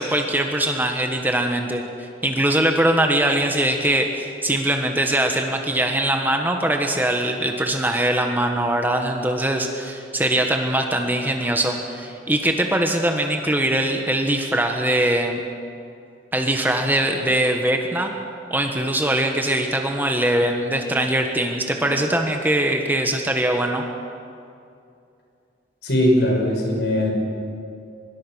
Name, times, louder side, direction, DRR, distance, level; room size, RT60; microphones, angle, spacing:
voice 1, 0.0-1.8 2.2-15.4 16.3-18.1 18.5-23.8, right 1 dB, 10° right, 3 dB, 1.4 m, -22 dB
voice 2, 25.8-27.1, left 1 dB, 65° left, 0 dB, 6.0 m, -19 dB
25.0 x 21.5 x 6.4 m, 2.5 s
head